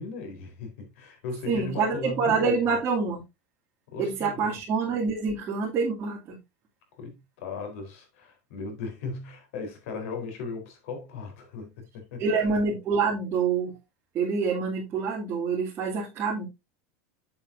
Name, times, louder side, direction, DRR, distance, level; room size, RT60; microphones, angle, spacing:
voice 1, 0.0-2.7 3.9-4.6 7.0-12.5, left 4 dB, 70° left, 3.8 m, -37 dB
voice 2, 1.5-3.2 4.0-6.4 12.2-13.7 14.1-16.5, right 5 dB, 30° right, 2.6 m, -26 dB
8.7 x 7.6 x 2.6 m
supercardioid pair, 155°, 7 cm